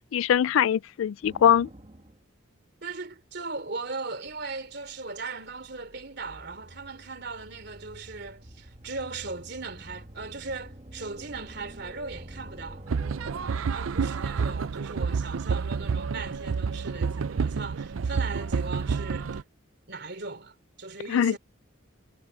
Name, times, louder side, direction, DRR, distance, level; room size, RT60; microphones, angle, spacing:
voice 1, 0.1-1.7 21.1-21.4, left 9 dB, 80° left, 0.3 m, -22 dB
sound 1, 1.2-2.2 4.3-13.7, right 1 dB, 30° right, 1.4 m, -47 dB
voice 2, 2.8-12.9 13.7-19.4 19.9-21.4, right 3 dB, 55° right, 3.3 m, -38 dB
sound 2, 12.9-19.4, right 5 dB, 90° right, 0.5 m, -29 dB
head